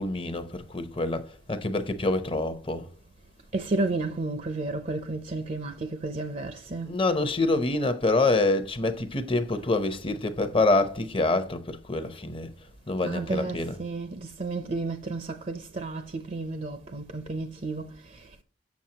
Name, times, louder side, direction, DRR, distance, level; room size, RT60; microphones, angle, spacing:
voice 1, 0.0-2.8 6.8-12.5 12.9-13.8, left 2 dB, 30° left, 0.8 m, -26 dB
voice 2, 3.5-7.0 13.0-18.4, right 3 dB, 40° right, 0.6 m, -32 dB
7.3 x 7.0 x 2.9 m
head